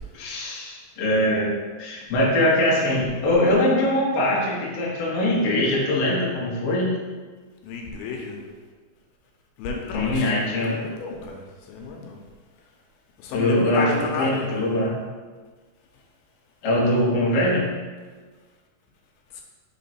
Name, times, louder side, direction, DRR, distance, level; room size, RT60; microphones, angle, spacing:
voice 1, 0.1-1.5 1.8-6.9 9.9-10.8 13.3-14.9 16.6-17.7, left 1 dB, 60° left, -5 dB, 1.6 m, -22 dB
voice 2, 7.6-8.4 9.6-10.3 10.6-12.2 13.2-14.6 19.3-19.4, left 3 dB, 85° left, 1 dB, 2.6 m, -31 dB
5.9 x 3.7 x 4.3 m, 1.4 s
omnidirectional pair, 4.4 m